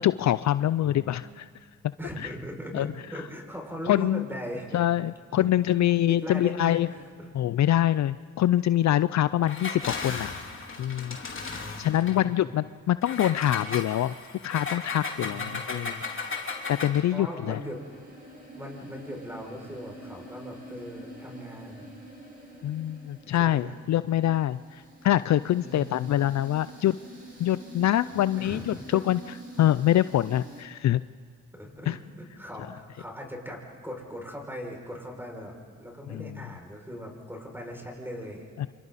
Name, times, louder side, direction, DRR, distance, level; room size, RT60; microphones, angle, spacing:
voice 1, 0.0-1.5 2.7-2.9 3.9-4.2 4.7-6.9 7.3-10.3 10.8-11.2 11.5-14.1 14.4-16.0 16.7-17.6 22.6-26.9 27.4-31.0 31.9-32.0 36.1-36.3 38.6-38.7, left 12 dB, 60° left, 16 dB, 0.5 m, -25 dB
voice 2, 0.8-1.1 2.0-4.8 5.4-5.8 6.1-7.3 11.5-12.5 15.2-16.0 17.1-17.8 18.5-21.9 23.4-23.8 25.6-26.1 28.3-29.0 31.5-35.5 35.8-38.5, equal, 5° right, 0 dB, 6.2 m, -39 dB
Engine, 9.4-12.2 13.0-17.1, left 4 dB, 40° left, 3.2 m, -35 dB
sound 1, 17.5-30.6, right 1 dB, 30° right, 7.0 m, -46 dB
27.5 x 27.0 x 4.2 m, 2.1 s
supercardioid pair, 60°, 32 cm